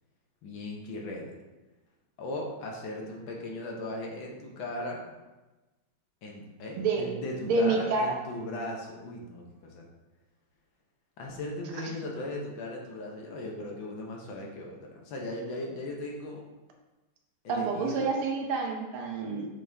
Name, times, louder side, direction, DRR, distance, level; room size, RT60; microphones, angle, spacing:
voice 1, 0.4-1.4 2.2-5.0 6.2-9.8 11.2-16.4 17.4-18.1, left 1 dB, 70° left, -1 dB, 1.6 m, -38 dB
voice 2, 7.5-8.2 11.7-11.9 17.5-19.5, right 3 dB, 85° right, 1 dB, 1.7 m, -28 dB
7.2 x 4.1 x 3.4 m, 1.1 s
omnidirectional pair, 2.3 m